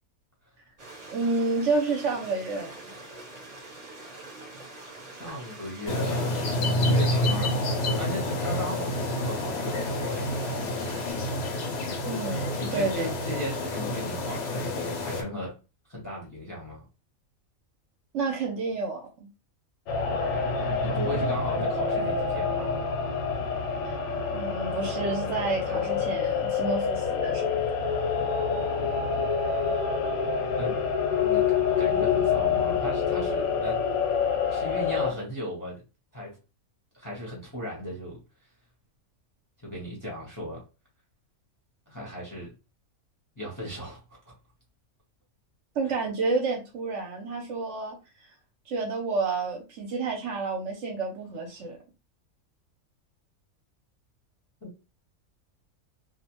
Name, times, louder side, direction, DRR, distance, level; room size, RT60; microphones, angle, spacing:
Stream, 0.8-11.1, right 2 dB, 40° right, 0.6 m, -45 dB
voice 1, 1.1-2.7 12.1-13.1 18.1-19.0 23.8-24.0 24.3-27.6 45.8-48.0 48.7-51.8, right 3 dB, 65° right, 2 dB, 0.8 m, -29 dB
voice 2, 5.1-10.4 12.6-15.5 15.9-16.9 20.8-22.7 30.6-30.8 31.2-31.4 31.8-33.8 34.5-35.8 36.1-36.4 36.9-38.2 39.6-40.6 41.9-42.5 43.4-44.3 54.6-54.7, left 1 dB, 20° left, -2 dB, 0.6 m, -36 dB
sound 1, 5.9-15.2, left 1 dB, 60° left, 0.7 m, -28 dB
sound 2, 19.9-35.1, left 6 dB, 85° left, 1.0 m, -27 dB
2.5 x 2.1 x 2.9 m, 0.31 s
omnidirectional pair, 1.5 m